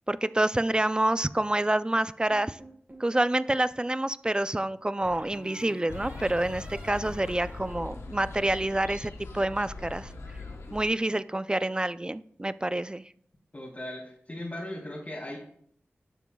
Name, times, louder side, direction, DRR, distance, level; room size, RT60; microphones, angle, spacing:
voice 1, 0.1-2.6 3.0-10.1 10.7-13.0, right 1 dB, 20° right, 15 dB, 0.3 m, -27 dB
sound 1, 2.3-3.1 5.0-8.6, equal, 40° right, 3.6 m, -49 dB
sound 2, 5.9-10.9, left 3 dB, 80° left, 0.9 m, -41 dB
voice 2, 13.5-15.4, left 1 dB, 40° left, -7 dB, 3.2 m, -38 dB
12.0 x 6.9 x 2.3 m, 0.65 s
cardioid pair, 40°, 5 cm